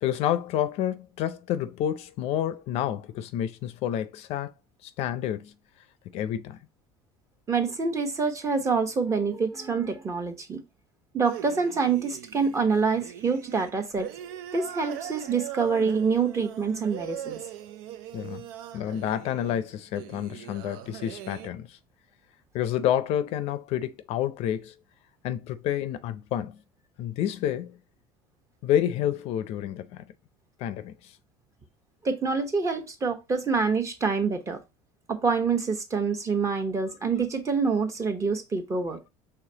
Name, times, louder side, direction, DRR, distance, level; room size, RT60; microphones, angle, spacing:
voice 1, 0.0-4.5 4.8-5.5 6.1-6.6 18.1-18.4 18.7-21.8 22.5-24.7 25.2-26.6 27.0-27.8 28.6-30.1 30.6-31.1, left 11 dB, 60° left, 0.5 m, -29 dB
voice 2, 7.5-10.6 11.1-14.1 14.5-17.4 32.0-34.6 35.1-39.0, right 5 dB, 25° right, 1.0 m, -26 dB
sound 1, 11.2-21.5, right 11 dB, 85° right, 0.5 m, -41 dB
4.9 x 3.4 x 2.8 m
supercardioid pair, 110°, 12 cm